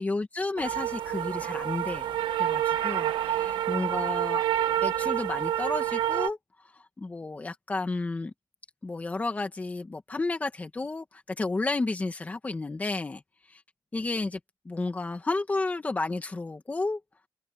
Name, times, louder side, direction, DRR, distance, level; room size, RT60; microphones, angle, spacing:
voice 1, 0.0-4.4 4.8-6.4 6.7-8.3 8.8-13.2 13.5-13.6 13.9-14.4 14.7-17.0, left 3 dB, 20° left, 2.2 m, -32 dB
sound 1, 0.6-6.3, right 11 dB, 85° right, 1.3 m, -28 dB
open air
cardioid pair, 125°, 8 cm